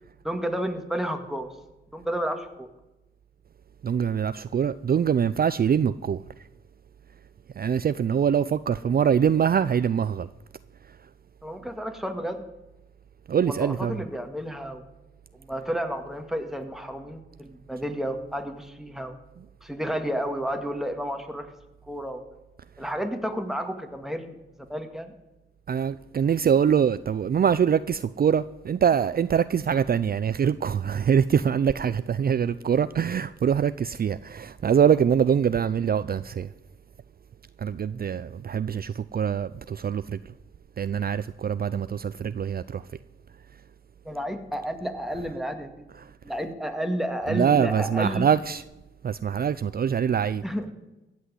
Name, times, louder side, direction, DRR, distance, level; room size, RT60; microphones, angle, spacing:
voice 1, 0.2-1.5 1.9-2.7 11.4-12.4 13.4-14.8 15.4-19.1 19.6-21.5 21.9-22.2 22.8-24.3 24.7-25.1 44.0-45.9 46.2-48.3 50.4-50.7, equal, ahead, 1.9 m, -31 dB
voice 2, 3.8-6.2 7.6-10.3 13.3-14.0 25.7-36.5 37.6-40.2 40.8-42.8 47.3-48.6 49.0-50.4, right 8 dB, 50° right, 0.4 m, -24 dB
15.5 x 6.3 x 9.5 m
cardioid pair, 60°, 20 cm